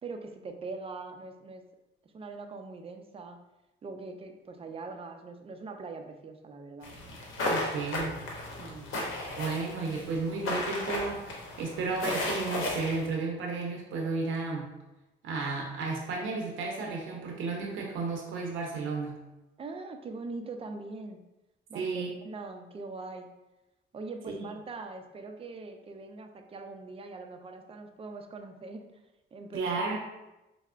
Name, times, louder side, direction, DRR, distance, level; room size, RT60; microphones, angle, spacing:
voice 1, 0.0-1.6 2.1-3.4 3.8-6.9 8.6-8.9 19.6-21.2 21.7-23.3 23.9-29.0 29.3-29.9, right 3 dB, 30° right, 5 dB, 0.4 m, -42 dB
sound 1, 6.8-13.1, left 1 dB, 85° left, 0.8 m, -34 dB
voice 2, 7.5-8.2 9.4-11.2 11.6-14.7 15.2-19.2 21.7-22.1 24.3-24.5 29.5-30.0, right 4 dB, 80° right, 0 dB, 0.6 m, -33 dB
4.1 x 2.0 x 2.4 m, 0.99 s
cardioid pair, 90°, 20 cm